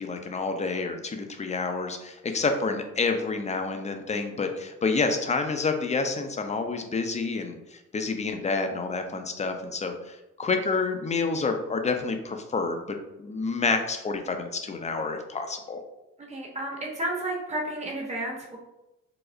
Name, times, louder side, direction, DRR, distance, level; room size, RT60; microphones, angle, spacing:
voice 1, 0.0-15.8, left 4 dB, 25° left, 5 dB, 0.4 m, -29 dB
voice 2, 16.3-18.6, right 1 dB, 20° right, -1 dB, 0.9 m, -32 dB
4.7 x 2.0 x 2.5 m, 0.94 s
cardioid pair, 90°, 30 cm